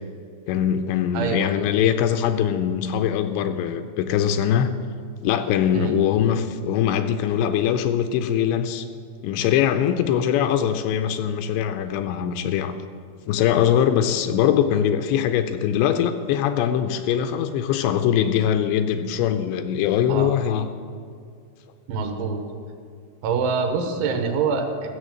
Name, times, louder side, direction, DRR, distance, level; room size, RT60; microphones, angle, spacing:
voice 1, 0.5-4.7 5.2-8.9 9.2-12.8 13.3-20.7, left 9 dB, 85° left, 8 dB, 2.7 m, -22 dB
voice 2, 1.1-1.5 5.7-5.9 20.1-20.3 21.9-22.4 23.2-24.9, right 5 dB, 90° right, 4 dB, 3.5 m, -25 dB
14.5 x 7.2 x 7.6 m, 2.2 s
omnidirectional pair, 5.3 m